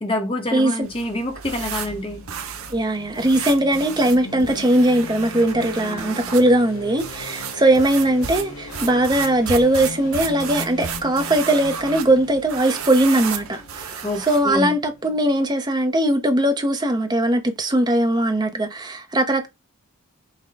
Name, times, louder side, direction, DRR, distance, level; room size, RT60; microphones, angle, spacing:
voice 1, 0.0-2.2 14.0-14.7, left 1 dB, 25° left, 0.8 m, -26 dB
sound 1, 0.8-14.6, right 7 dB, 85° right, 0.7 m, -34 dB
sound 2, 1.5-15.4, left 3 dB, 75° left, 1.1 m, -39 dB
voice 2, 2.7-19.5, right 1 dB, 20° right, 0.6 m, -20 dB
5.7 x 2.2 x 3.4 m
head